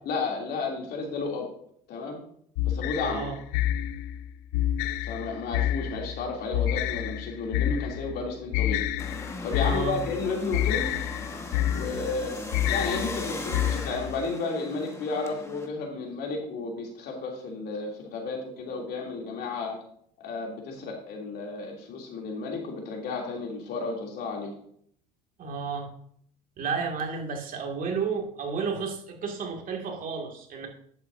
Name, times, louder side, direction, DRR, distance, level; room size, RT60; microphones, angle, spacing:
voice 1, 0.0-1.5 1.9-2.2 2.6-3.2 5.1-8.8 9.4-10.9 11.7-19.8 20.2-24.6, left 4 dB, 60° left, -1 dB, 3.1 m, -32 dB
sound 1, 2.6-14.2, left 12 dB, 80° left, 0.5 m, -29 dB
voice 2, 3.0-3.4 9.6-10.0 25.4-25.9 26.6-30.7, right 5 dB, 50° right, 1 dB, 2.4 m, -32 dB
sound 2, 9.0-15.7, left 2 dB, 15° left, 1.6 m, -38 dB
10.5 x 8.2 x 2.7 m, 0.64 s
supercardioid pair, 85°, 18 cm